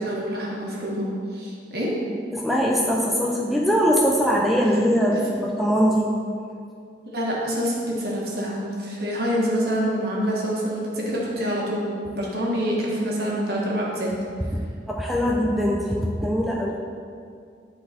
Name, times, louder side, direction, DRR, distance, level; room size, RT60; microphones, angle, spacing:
voice 1, 0.0-1.9 5.1-5.2 7.1-14.1, equal, 60° right, -4 dB, 1.6 m, -26 dB
voice 2, 2.3-6.1 14.5-16.7, equal, ahead, -3 dB, 0.6 m, -22 dB
10.0 x 4.1 x 4.2 m, 2.3 s
head